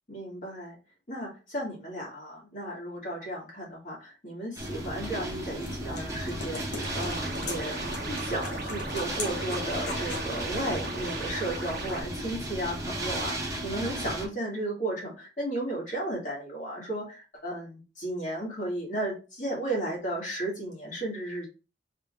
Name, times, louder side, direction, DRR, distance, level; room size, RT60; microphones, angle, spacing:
voice 1, 0.1-0.8 1.1-21.5, right 1 dB, 45° left, -3 dB, 1.8 m, -34 dB
sound 1, 4.6-14.3, right 1 dB, 20° right, 0.8 m, -35 dB
sound 2, 5.1-10.3, left 2 dB, 75° left, 1.0 m, -40 dB
sound 3, 6.8-12.0, right 3 dB, 60° right, 0.8 m, -39 dB
3.4 x 3.3 x 2.4 m, 0.32 s
head